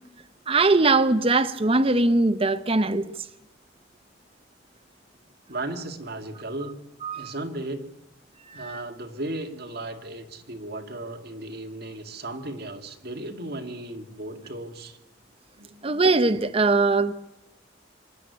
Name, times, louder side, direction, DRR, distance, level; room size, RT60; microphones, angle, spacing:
voice 1, 0.5-3.1 7.0-7.3 8.5-8.8 15.8-17.1, right 3 dB, 30° right, 0.8 m, -21 dB
voice 2, 5.5-6.8 7.1-7.8 8.5-15.0 15.6-15.9, right 2 dB, 60° right, 2.2 m, -35 dB
25.0 x 11.5 x 9.4 m
head